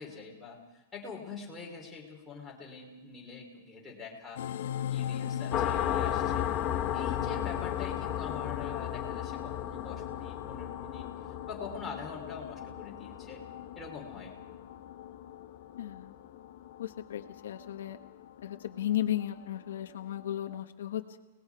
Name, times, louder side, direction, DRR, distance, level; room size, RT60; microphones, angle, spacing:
voice 1, 0.0-4.4 4.9-6.5 6.9-11.1 11.5-13.5 13.8-14.4, left 5 dB, 5° left, -4 dB, 3.5 m, -44 dB
sound 1, 4.4-20.6, left 10 dB, 60° left, 0.9 m, -41 dB
sound 2, 5.5-14.8, left 10 dB, 20° left, 0.9 m, -34 dB
voice 2, 15.8-16.1 16.8-18.0 18.4-21.2, left 12 dB, 75° left, 6 dB, 1.2 m, -35 dB
30.0 x 19.5 x 4.8 m, 1.1 s
supercardioid pair, 175°, 0 cm